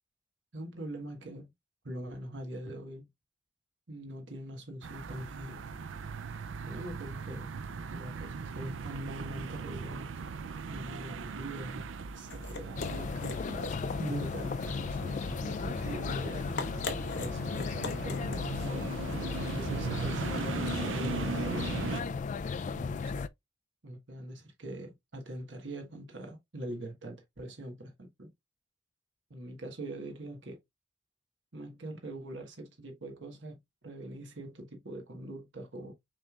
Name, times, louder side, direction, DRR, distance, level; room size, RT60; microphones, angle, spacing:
voice 1, 0.5-1.5 1.8-3.1 3.9-5.7 6.6-7.5 7.9-10.2 10.7-16.5 17.2-19.0 19.6-22.1 22.7-23.1 23.8-28.3 29.3-30.6 31.5-35.9, right 1 dB, 70° right, 1.3 m, -42 dB
sound 1, 4.8-22.0, right 5 dB, 90° right, 0.5 m, -39 dB
sound 2, 11.9-20.1, left 3 dB, 65° left, 0.9 m, -43 dB
sound 3, 12.8-23.3, left 5 dB, 40° left, 0.3 m, -35 dB
6.2 x 3.3 x 2.3 m
head